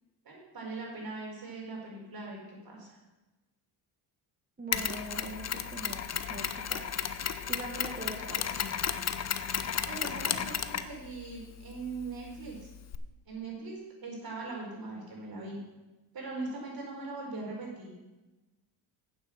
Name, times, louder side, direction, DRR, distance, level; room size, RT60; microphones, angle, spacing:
voice 1, 0.2-3.0 9.9-12.7 13.3-15.6 16.1-17.9, right 3 dB, 45° right, -2 dB, 4.6 m, -40 dB
voice 2, 4.6-6.8 7.5-8.5, right 2 dB, 20° right, -1 dB, 1.6 m, -42 dB
Mechanisms, 4.7-13.0, left 8 dB, 35° left, 0.7 m, -34 dB
8.9 x 7.4 x 7.1 m, 1.1 s
cardioid pair, 85°, 48 cm